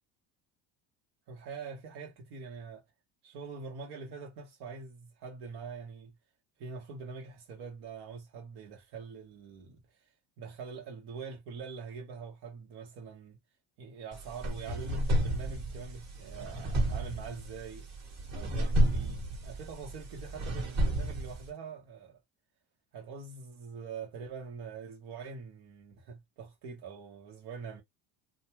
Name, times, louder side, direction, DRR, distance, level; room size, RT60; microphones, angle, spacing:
voice 1, 1.3-2.8 3.2-6.1 6.6-9.8 10.4-13.4 13.8-17.9 18.3-22.2 22.9-27.8, right 5 dB, 80° right, 1.3 m, -44 dB
sound 1, 14.1-21.5, right 1 dB, 45° right, 1.4 m, -31 dB
2.6 x 2.3 x 3.0 m
cardioid pair, 120°, 38 cm